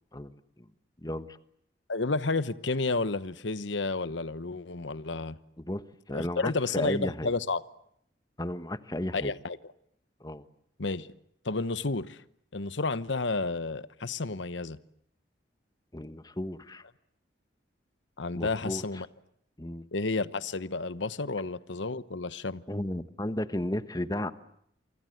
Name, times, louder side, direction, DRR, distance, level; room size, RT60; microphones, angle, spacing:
voice 1, 0.1-0.6 1.0-1.4 5.6-5.8 6.1-7.3 8.4-9.3 10.2-10.4 15.9-16.8 18.3-18.8 19.6-19.9 22.7-24.3, left 1 dB, 20° left, 1.2 m, -34 dB
voice 2, 1.9-5.4 6.1-7.6 9.1-9.6 10.8-11.1 11.4-12.2 12.5-14.8 18.2-19.1 19.9-22.6, left 3 dB, 75° left, 1.0 m, -31 dB
28.0 x 25.5 x 7.8 m
head